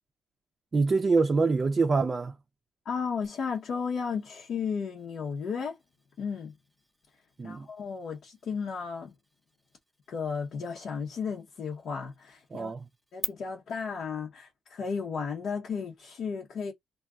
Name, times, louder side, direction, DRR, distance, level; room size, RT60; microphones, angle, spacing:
voice 1, 0.7-2.4 7.4-7.7 12.5-12.9, right 4 dB, 35° right, 0.5 m, -25 dB
voice 2, 2.8-5.8 6.2-6.5 7.4-9.1 10.1-12.7 13.1-16.7, left 6 dB, 65° left, 0.8 m, -34 dB
sound 1, 3.2-13.3, equal, ahead, 0.8 m, -47 dB
2.4 x 2.2 x 3.6 m
cardioid pair, 90°, 0 cm